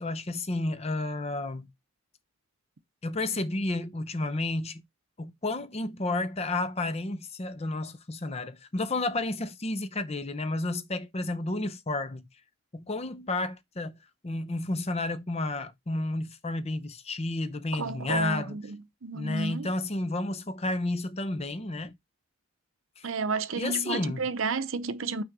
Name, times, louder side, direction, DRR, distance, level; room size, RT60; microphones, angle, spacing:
voice 1, 0.0-1.7 3.0-4.8 5.2-12.3 12.7-13.9 14.2-18.6 19.1-22.0 23.0-23.1 23.6-24.3, left 2 dB, 30° left, 0.6 m, -31 dB
voice 2, 17.7-19.7 23.0-25.2, right 4 dB, 70° right, 0.7 m, -32 dB
6.3 x 3.5 x 5.9 m
head